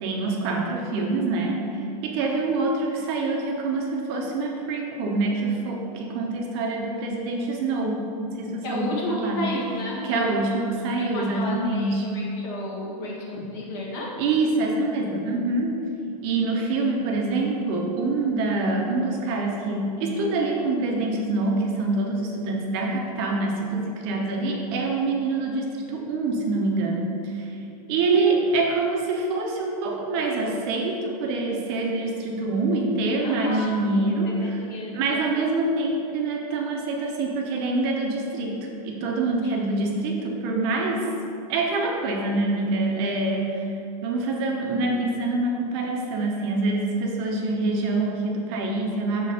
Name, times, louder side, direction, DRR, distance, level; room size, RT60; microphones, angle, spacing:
voice 1, 0.0-9.5 10.0-12.1 13.4-13.5 14.2-15.8 16.2-27.5 27.9-34.6 34.9-41.1 41.5-43.7 44.0-49.3, right 3 dB, 40° right, 0 dB, 0.8 m, -25 dB
voice 2, 8.6-10.5 11.0-14.1 33.2-33.8 34.2-35.3 39.4-39.5, left 1 dB, 45° left, -3 dB, 1.5 m, -32 dB
6.3 x 4.3 x 4.9 m, 2.8 s
supercardioid pair, 160°, 20 cm